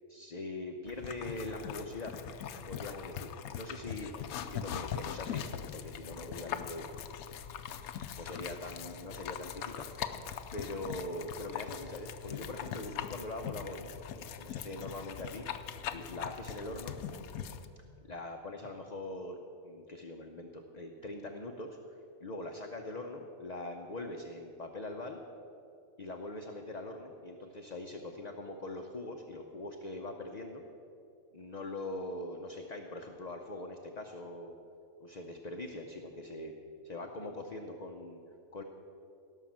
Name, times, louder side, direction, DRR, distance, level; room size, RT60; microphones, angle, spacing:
voice 1, 0.1-2.2 2.7-5.4 5.7-6.9 8.2-9.9 10.5-15.4 15.9-17.0 18.1-25.2 26.0-30.6 31.3-34.6 35.0-36.5 36.8-38.2 38.5-38.6, left 2 dB, 40° left, 3 dB, 0.7 m, -42 dB
sound 1, 0.8-17.7, left 9 dB, 80° left, 1.1 m, -41 dB
17.5 x 5.8 x 7.4 m, 2.7 s
omnidirectional pair, 1.5 m